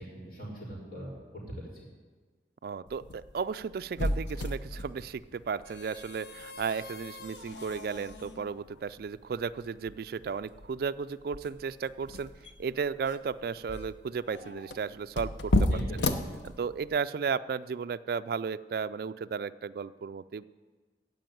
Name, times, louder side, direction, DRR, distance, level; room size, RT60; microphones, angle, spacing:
voice 1, 0.0-1.9 15.7-16.1, equal, 55° left, -4 dB, 4.2 m, -41 dB
voice 2, 2.6-12.3 12.6-15.7 16.4-20.4, right 6 dB, 55° right, 13 dB, 0.3 m, -34 dB
sound 1, 2.9-17.0, left 1 dB, 75° left, 0.8 m, -35 dB
15.5 x 5.3 x 9.0 m, 1.4 s
head